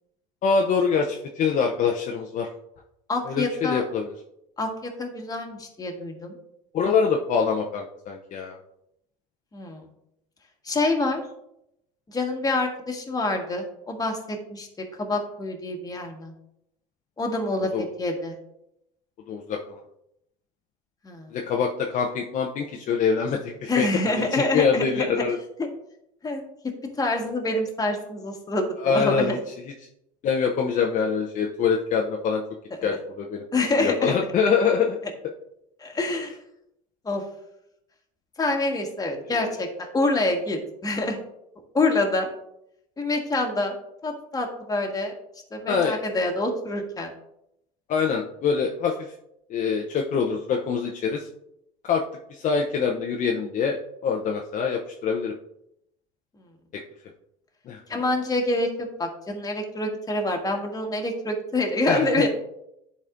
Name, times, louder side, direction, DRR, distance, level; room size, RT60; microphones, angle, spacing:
voice 1, 0.4-2.5 3.2-4.1 6.7-8.6 17.7-17.8 19.3-19.8 21.3-23.9 24.2-25.4 28.8-29.4 29.7-29.8 30.2-32.4 32.8-33.4 33.8-35.0 39.3-39.6 45.7-46.0 47.9-49.1 49.5-51.3 51.8-52.0 52.3-53.8 54.0-55.3 57.7-57.8 61.9-62.3, left 6 dB, 45° left, 1 dB, 0.7 m, -24 dB
voice 2, 3.1-3.8 4.6-6.3 9.5-9.8 10.6-11.2 12.1-14.7 15.0-16.3 17.2-17.7 18.0-18.3 21.0-21.3 23.7-25.2 26.2-26.4 27.0-29.4 33.5-34.1 35.8-36.4 37.0-37.2 38.4-41.2 41.7-42.3 43.0-43.7 44.0-45.1 45.5-47.1 57.9-62.3, left 2 dB, 20° left, 2 dB, 1.5 m, -26 dB
11.0 x 4.2 x 2.5 m, 0.79 s
supercardioid pair, 85°, 18 cm